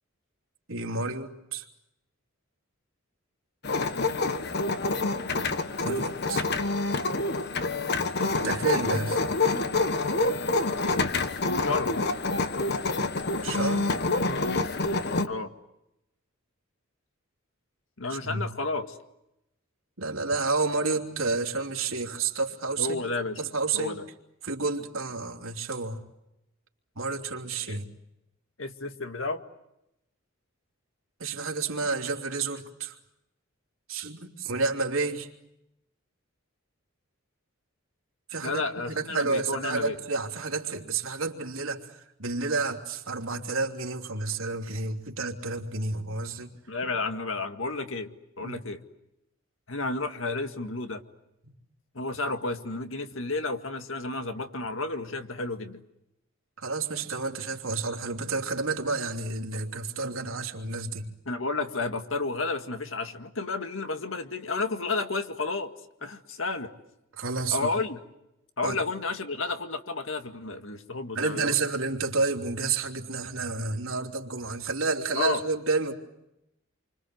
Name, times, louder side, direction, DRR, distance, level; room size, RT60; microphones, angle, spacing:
voice 1, 0.7-1.7 5.3-6.4 8.4-9.2 13.4-13.9 18.1-18.5 20.0-23.0 23.4-24.0 24.4-26.0 26.9-27.9 31.2-33.0 33.9-35.3 38.3-46.5 48.4-48.6 51.4-51.5 56.6-61.1 67.2-67.7 68.6-68.8 71.1-75.9, right 3 dB, 85° right, 2 dB, 3.2 m, -30 dB
sound 1, 3.6-15.3, left 3 dB, 55° left, 1.4 m, -27 dB
voice 2, 11.6-12.0 15.3-15.5 18.0-19.0 22.8-23.4 23.7-24.1 27.7-27.8 28.6-29.4 38.4-40.0 46.7-48.1 48.4-48.8 49.7-51.0 51.9-55.8 61.3-65.7 66.0-66.7 67.5-68.0 68.6-71.6 75.1-75.4, left 3 dB, 70° left, 7 dB, 2.0 m, -31 dB
29.0 x 25.0 x 7.9 m, 0.87 s
head